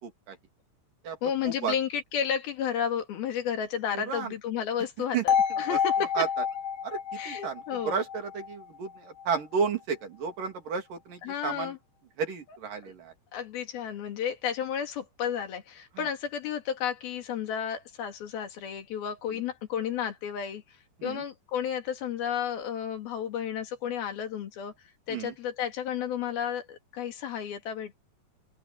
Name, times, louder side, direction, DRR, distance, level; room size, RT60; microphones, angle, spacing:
voice 1, 0.0-0.4 1.0-1.2 1.4-1.7 3.9-4.3 5.1-5.2 5.6-6.4 6.8-11.7 12.2-13.1 19.3-19.4 21.0-21.2 25.1-25.3, right 6 dB, 60° right, 4.5 m, -32 dB
voice 2, 1.2-6.2 7.2-8.0 11.2-11.8 12.8-12.9 13.3-20.6 21.0-24.7 25.1-28.0, left 8 dB, 75° left, 4.1 m, -32 dB
sound 1, 5.3-9.3, left 7 dB, 60° left, 2.9 m, -29 dB
open air
omnidirectional pair, 4.4 m